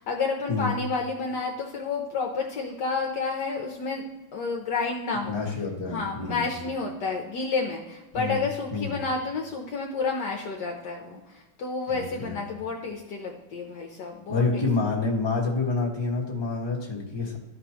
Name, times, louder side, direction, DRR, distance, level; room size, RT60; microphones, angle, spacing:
voice 1, 0.0-5.4 5.9-14.6, left 4 dB, 65° left, 1 dB, 1.3 m, -30 dB
voice 2, 5.3-6.4 8.1-8.4 8.7-9.0 11.9-12.4 14.3-17.4, left 4 dB, 15° left, -3 dB, 1.4 m, -28 dB
13.5 x 5.2 x 3.0 m, 1.1 s
omnidirectional pair, 2.2 m